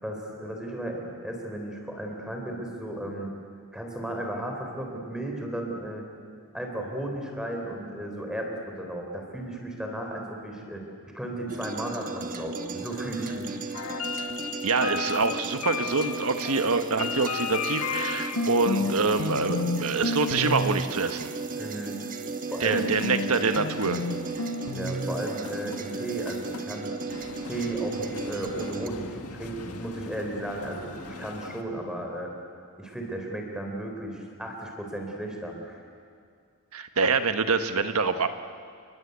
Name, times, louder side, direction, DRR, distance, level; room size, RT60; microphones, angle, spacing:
voice 1, 0.0-3.3 3.7-6.1 6.5-10.8 11.1-14.0 21.6-22.0 22.5-22.9 24.7-26.9 27.4-32.3 32.8-35.8, right 1 dB, 5° right, 2 dB, 4.0 m, -34 dB
sound 1, 11.5-28.9, right 3 dB, 40° right, 1.4 m, -36 dB
sound 2, 13.7-18.9 19.2-19.8 20.0-20.7 22.7-31.6, left 3 dB, 85° left, 1.8 m, -33 dB
voice 2, 14.6-21.3 22.6-24.0 36.7-38.3, right 4 dB, 80° right, 9 dB, 1.4 m, -26 dB
29.5 x 21.5 x 8.3 m, 2.2 s
head